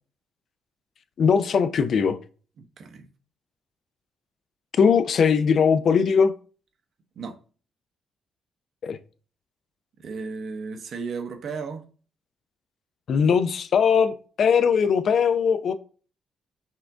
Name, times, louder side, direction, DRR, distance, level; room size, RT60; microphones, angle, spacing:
voice 1, 1.2-2.2 4.7-6.3 8.8-9.0 13.1-15.7, left 6 dB, 60° left, 0.4 m, -20 dB
voice 2, 2.6-3.1 7.2-7.4 10.0-11.9, right 5 dB, 60° right, 0.8 m, -34 dB
5.6 x 2.5 x 3.4 m
cardioid pair, 90°, 0 cm